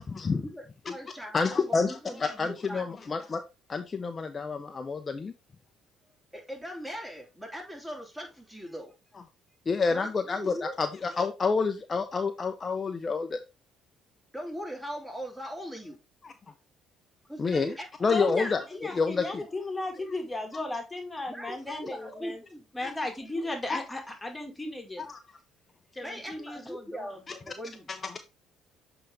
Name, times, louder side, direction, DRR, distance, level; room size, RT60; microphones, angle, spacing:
voice 1, 0.3-0.6 0.9-2.9 6.3-8.9 9.9-10.1 10.4-10.8 14.3-16.0 17.3-18.4 21.3-22.6 26.0-27.9, equal, 10° right, 3.1 m, -40 dB
voice 2, 1.3-3.4 3.7-5.3 9.7-13.4 16.2-16.3 17.4-17.8 18.0-18.6 18.9-19.4 23.7-23.8 25.0-25.2 28.0-28.1, left 4 dB, 35° left, 0.7 m, -28 dB
voice 3, 18.1-22.5 22.7-25.0 25.9-27.1, left 2 dB, 15° left, 1.9 m, -35 dB
7.6 x 3.9 x 3.4 m
supercardioid pair, 65°, 0 cm